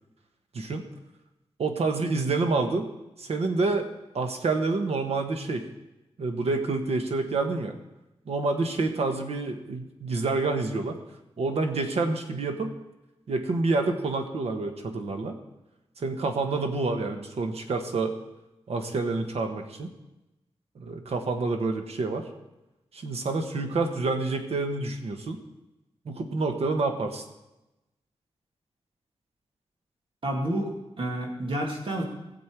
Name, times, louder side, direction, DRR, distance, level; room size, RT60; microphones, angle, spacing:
voice 1, 0.5-0.9 1.6-2.9 3.2-3.9 4.1-5.6 6.2-7.7 8.3-11.0 11.4-12.8 13.3-15.4 16.0-18.1 18.7-19.9 20.7-22.3 22.9-25.4 26.0-27.2, right 3 dB, 75° right, 5 dB, 1.3 m, -28 dB
voice 2, 30.2-32.0, right 1 dB, 55° right, 0 dB, 2.4 m, -30 dB
19.0 x 7.4 x 4.7 m, 0.98 s
wide cardioid pair, 175°, 11 cm